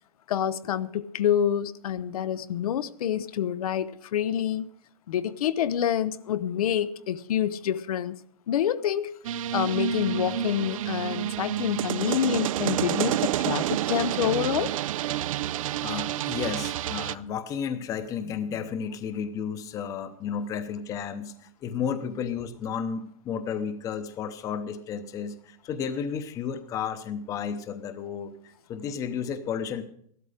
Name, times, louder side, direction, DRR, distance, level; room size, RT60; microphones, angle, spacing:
voice 1, 0.3-4.7 5.1-8.2 8.5-9.1 9.5-14.7, left 9 dB, 85° left, 0.8 m, -27 dB
sound 1, 9.2-17.1, right 11 dB, 65° right, 0.5 m, -29 dB
voice 2, 15.8-29.8, left 7 dB, 20° left, 0.8 m, -33 dB
14.0 x 12.5 x 5.0 m
supercardioid pair, 165°, 18 cm